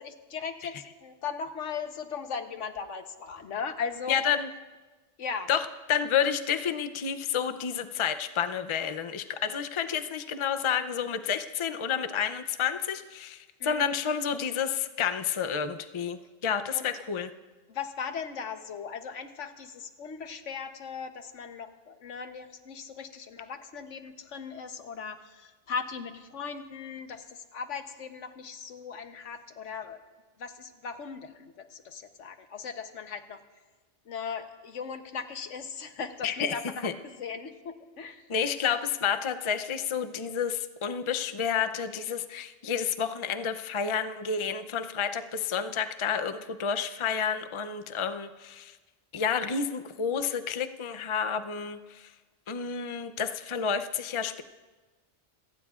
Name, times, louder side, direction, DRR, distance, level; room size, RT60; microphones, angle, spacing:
voice 1, 0.0-4.2 5.2-5.5 13.6-13.9 16.7-16.9 17.7-30.0 30.4-33.4 34.0-38.3, left 6 dB, 80° left, 8 dB, 1.3 m, -38 dB
voice 2, 4.1-4.5 5.5-5.6 5.9-17.3 36.2-36.5 36.8-36.9 38.3-48.8 49.1-52.1 52.5-54.4, left 7 dB, 35° left, 8 dB, 0.5 m, -30 dB
27.5 x 18.0 x 2.4 m, 1.2 s
omnidirectional pair, 1.2 m